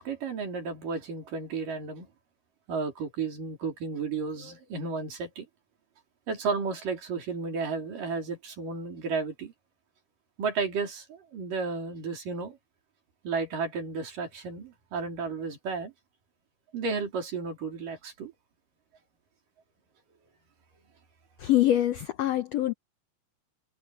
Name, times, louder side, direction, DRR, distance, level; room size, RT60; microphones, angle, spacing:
voice 1, 0.0-2.1 2.7-5.5 6.3-9.5 10.4-12.6 13.2-15.9 16.7-18.3, right 4 dB, 70° right, 5.6 m, -33 dB
voice 2, 21.4-22.7, left 13 dB, 85° left, 1.4 m, -24 dB
omnidirectional pair, 4.0 m